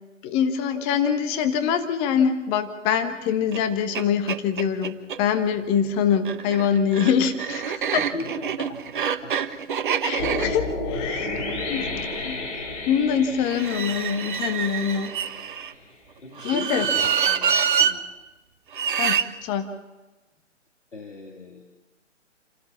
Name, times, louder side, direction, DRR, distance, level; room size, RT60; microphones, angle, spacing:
voice 1, 0.2-8.0 10.0-11.3 11.7-12.4 12.9-15.1 16.4-16.8 19.0-19.7, left 7 dB, 15° left, 9 dB, 1.1 m, -24 dB
sound 1, 3.5-3.6 3.9-4.0 4.3-5.2 6.1-12.3 13.4-15.7 16.4-17.9 18.7-19.3, right 8 dB, 40° right, 1.3 m, -26 dB
voice 2, 8.0-9.4 16.2-18.0 20.9-21.7, left 3 dB, 75° left, 2 dB, 2.6 m, -38 dB
sound 2, 10.2-15.4, left 2 dB, 30° left, 3.9 m, -31 dB
29.5 x 13.0 x 7.3 m, 1.1 s
figure-of-eight pair, 135°, 37 cm